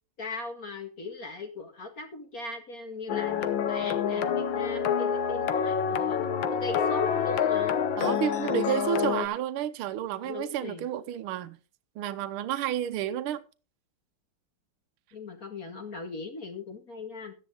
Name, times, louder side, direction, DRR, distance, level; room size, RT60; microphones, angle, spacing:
voice 1, 0.2-6.2 6.5-7.8 10.2-10.9 15.1-17.3, left 3 dB, 40° left, 2.2 m, -38 dB
sound 1, 3.1-9.3, left 7 dB, 65° left, 1.6 m, -27 dB
voice 2, 8.0-11.6 12.0-13.4, right 11 dB, 80° right, 1.6 m, -31 dB
13.5 x 10.5 x 3.8 m
omnidirectional pair, 2.4 m